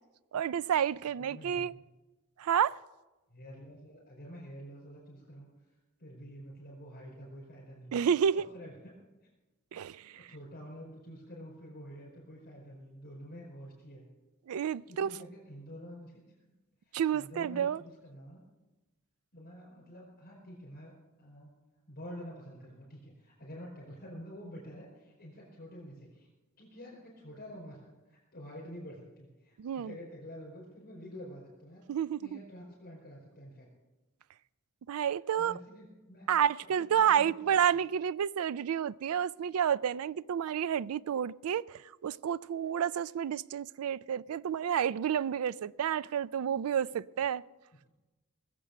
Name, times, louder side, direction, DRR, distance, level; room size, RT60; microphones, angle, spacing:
voice 1, 0.3-1.7 2.4-2.8 7.9-8.5 9.7-10.3 14.5-15.1 16.9-17.8 29.6-29.9 31.9-32.4 34.9-35.6 36.3-47.4, right 8 dB, 75° right, 0.3 m, -30 dB
voice 2, 1.2-1.8 3.3-5.5 6.0-7.9 8.3-9.0 10.1-14.1 14.8-16.2 16.9-18.4 19.3-21.5 21.9-26.3 26.6-27.8 28.0-31.8 32.2-33.7 35.3-36.3 36.6-37.5, equal, 45° left, 4.7 m, -48 dB
19.5 x 7.7 x 6.7 m
head